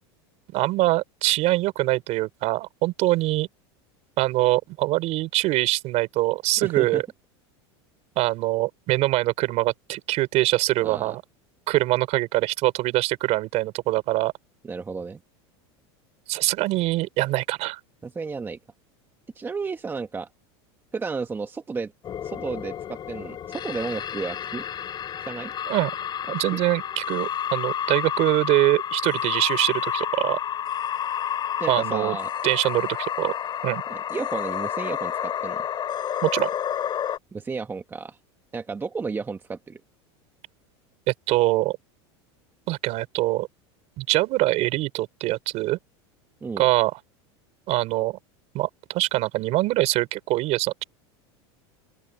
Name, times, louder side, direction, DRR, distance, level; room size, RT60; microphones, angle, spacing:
voice 1, 0.5-3.5 4.2-7.0 8.2-11.2 11.7-14.3 16.3-17.8 25.7-25.9 26.3-30.4 31.7-32.2 32.4-33.3 33.6-33.8 36.2-36.5 41.1-41.8 42.7-43.5 44.0-45.8 46.6-46.9 47.7-48.2 48.5-50.8, right 18 dB, 50° right, 4.4 m, -23 dB
voice 2, 6.6-7.0 10.8-11.2 14.6-15.2 18.0-18.6 19.3-20.3 20.9-21.9 22.2-24.6 25.2-25.5 26.5-26.6 31.6-32.3 33.9-35.7 37.3-38.2 38.5-39.8 46.4-46.7, right 4 dB, 15° right, 1.4 m, -32 dB
sound 1, 22.0-37.2, left 9 dB, 30° left, 6.1 m, -30 dB
open air
supercardioid pair, 130°, 14 cm